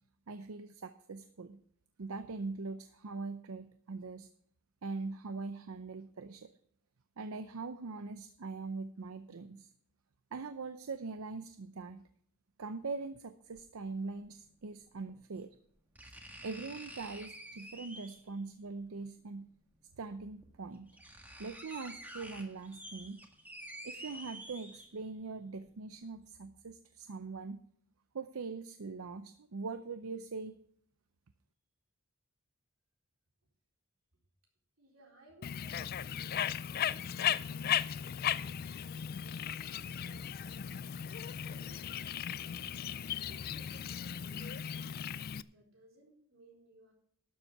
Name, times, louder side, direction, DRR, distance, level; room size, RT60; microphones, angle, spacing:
voice 1, 0.3-1.6 2.0-4.3 4.8-6.5 7.2-9.7 10.3-12.0 12.6-15.5 16.4-19.5 19.9-20.9 21.4-23.2 23.8-27.6 28.1-30.6, right 4 dB, 85° right, 11 dB, 0.6 m, -42 dB
sound 1, 13.5-13.6 15.1-15.2 16.0-18.3 19.7-19.8 20.4-20.5 20.7-25.2 25.6-25.7, right 1 dB, 10° right, 1.5 m, -49 dB
voice 2, 34.8-38.7 39.2-40.9 41.2-42.1 43.0-44.6 45.4-46.9, right 1 dB, 65° right, 0 dB, 4.2 m, -62 dB
Bird, 35.4-45.4, left 9 dB, 45° left, 0.3 m, -36 dB
12.0 x 7.4 x 5.7 m, 0.64 s
head